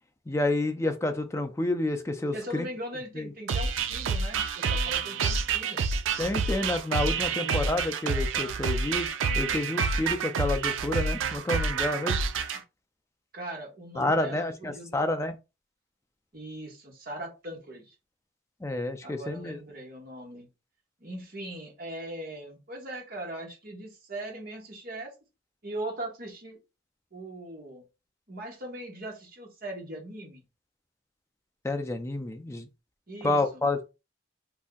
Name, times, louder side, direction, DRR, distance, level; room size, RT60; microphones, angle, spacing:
voice 1, 0.3-2.7 3.2-3.3 6.2-9.1 9.4-12.2 14.0-15.4 18.6-19.6 31.6-32.7 33.2-33.9, left 2 dB, 15° left, 0.3 m, -29 dB
voice 2, 2.3-5.9 7.3-7.6 10.5-10.6 12.5-12.6 13.3-15.1 16.3-17.9 19.0-20.5 21.0-25.1 25.6-26.6 27.1-27.8 28.3-30.4 33.1-33.6, right 1 dB, 45° right, 1.1 m, -40 dB
sound 1, 3.5-12.6, right 5 dB, 70° right, 0.4 m, -28 dB
2.6 x 2.1 x 3.5 m
head